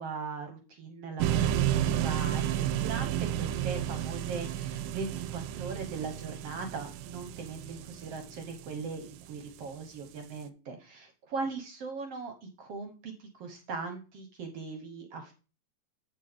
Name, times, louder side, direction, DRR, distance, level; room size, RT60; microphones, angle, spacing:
voice 1, 0.0-15.3, right 4 dB, 60° right, 5 dB, 1.7 m, -39 dB
sound 1, 1.2-9.3, right 11 dB, 80° right, 2.2 m, -31 dB
8.4 x 7.6 x 3.6 m, 0.33 s
omnidirectional pair, 4.0 m